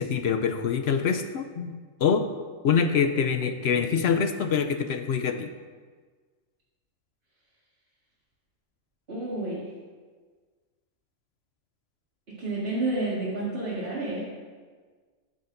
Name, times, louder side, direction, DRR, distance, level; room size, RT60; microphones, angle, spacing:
voice 1, 0.0-2.2 2.6-5.5, left 6 dB, 60° left, 7 dB, 0.7 m, -25 dB
voice 2, 9.1-9.6 12.4-14.2, right 2 dB, 45° right, -10 dB, 2.2 m, -30 dB
12.5 x 7.8 x 2.6 m, 1.5 s
omnidirectional pair, 1.4 m